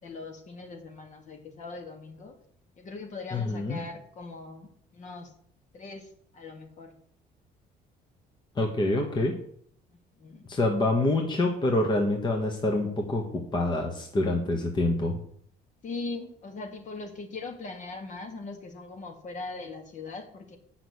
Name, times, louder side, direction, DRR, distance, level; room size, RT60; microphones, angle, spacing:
voice 1, 0.0-2.4 2.8-5.3 5.7-6.1 6.3-6.9 10.2-10.5 15.8-20.6, left 3 dB, 45° left, 4 dB, 2.0 m, -40 dB
voice 2, 3.3-3.8 8.6-9.3 10.5-15.2, left 2 dB, 25° left, 2 dB, 1.5 m, -26 dB
7.8 x 6.0 x 7.9 m, 0.64 s
cardioid pair, 110°, 17 cm